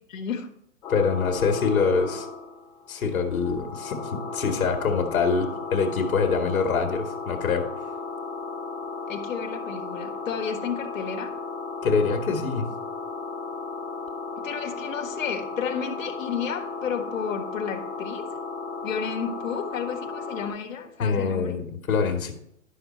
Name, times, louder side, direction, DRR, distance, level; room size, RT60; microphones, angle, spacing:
voice 1, 0.1-0.5 9.1-11.3 14.4-18.3 18.8-21.6, left 7 dB, 70° left, 3 dB, 1.7 m, -32 dB
sound 1, 0.8-20.5, left 4 dB, 10° left, 2.2 m, -35 dB
voice 2, 0.9-2.3 2.9-7.7 11.8-12.7 21.0-22.3, left 5 dB, 85° left, 5 dB, 1.9 m, -25 dB
11.5 x 6.2 x 4.4 m, 0.74 s
hypercardioid pair, 170°, 41 cm